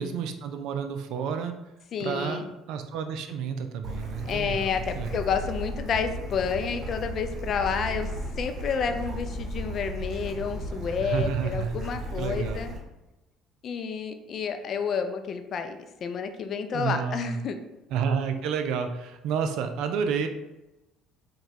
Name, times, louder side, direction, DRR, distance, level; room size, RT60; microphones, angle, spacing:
voice 1, 0.0-1.5 2.0-5.2 11.0-11.7 12.2-12.6 16.7-17.4 17.9-20.3, right 6 dB, 65° right, 7 dB, 0.4 m, -30 dB
voice 2, 1.9-2.5 4.3-8.1 8.4-12.7 13.6-17.6, left 6 dB, 50° left, 7 dB, 0.4 m, -30 dB
Bird / Stream, 3.8-12.8, right 1 dB, 50° right, 1.0 m, -35 dB
4.5 x 2.2 x 3.1 m, 1.0 s
hypercardioid pair, 60°, 0 cm